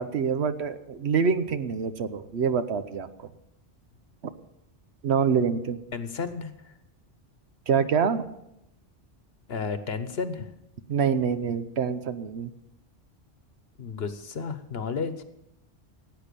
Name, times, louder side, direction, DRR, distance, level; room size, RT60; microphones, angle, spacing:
voice 1, 0.0-3.1 5.0-5.8 7.7-8.3 10.9-12.5, right 6 dB, 65° right, 11 dB, 1.1 m, -26 dB
voice 2, 5.9-6.7 9.5-10.5 13.8-15.2, left 5 dB, 60° left, 11 dB, 1.2 m, -32 dB
16.5 x 8.9 x 6.8 m, 0.85 s
omnidirectional pair, 1.2 m